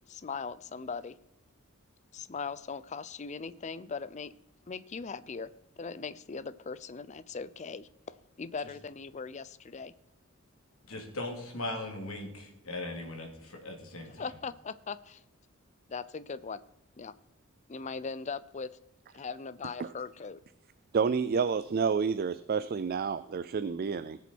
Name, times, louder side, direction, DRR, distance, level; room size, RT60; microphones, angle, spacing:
voice 1, 0.1-1.2 2.1-4.3 4.7-5.5 5.8-9.9 14.2-15.2 15.9-16.6 17.0-17.1 17.7-18.7 19.1-20.4, left 5 dB, 35° left, 16 dB, 0.5 m, -39 dB
voice 2, 10.9-14.3, left 2 dB, 90° left, 2 dB, 2.8 m, -39 dB
voice 3, 20.9-24.2, right 5 dB, 45° right, 14 dB, 0.4 m, -29 dB
19.0 x 7.1 x 4.5 m, 0.82 s
head